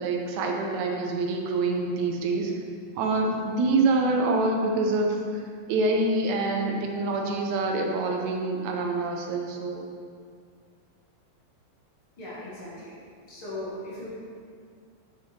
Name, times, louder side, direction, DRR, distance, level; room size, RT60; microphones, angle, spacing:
voice 1, 0.0-2.5 3.0-5.4 5.7-9.8, right 3 dB, 80° right, 2 dB, 2.2 m, -26 dB
voice 2, 12.2-13.0 13.3-14.1, left 1 dB, 50° left, -7 dB, 2.1 m, -38 dB
7.7 x 7.1 x 3.2 m, 2.1 s
omnidirectional pair, 3.4 m